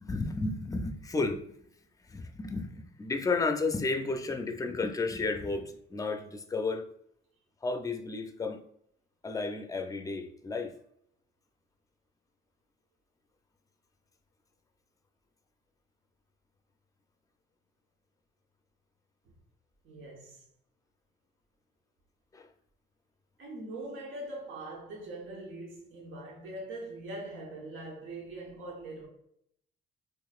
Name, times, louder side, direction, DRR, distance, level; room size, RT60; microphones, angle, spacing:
voice 1, 0.0-1.7 2.0-6.9 7.6-8.6 9.2-10.7 22.3-22.5, left 3 dB, 15° left, 0.4 m, -32 dB
voice 2, 19.8-20.5 23.4-29.1, right 2 dB, 80° right, 1.1 m, -42 dB
3.9 x 3.1 x 2.3 m
cardioid pair, 90°, 20 cm